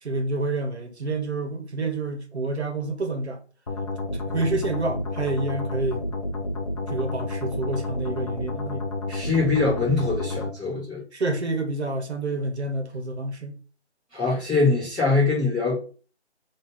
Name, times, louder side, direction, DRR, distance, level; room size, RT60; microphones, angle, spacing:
voice 1, 0.0-3.4 4.1-6.1 6.9-8.9 11.1-13.6, right 2 dB, 70° right, 1.1 m, -28 dB
sound 1, 3.7-10.5, left 2 dB, 35° left, 0.6 m, -30 dB
voice 2, 9.1-11.0 14.1-15.8, left 3 dB, ahead, 1.1 m, -23 dB
4.7 x 2.7 x 3.7 m
figure-of-eight pair, 165°, 34 cm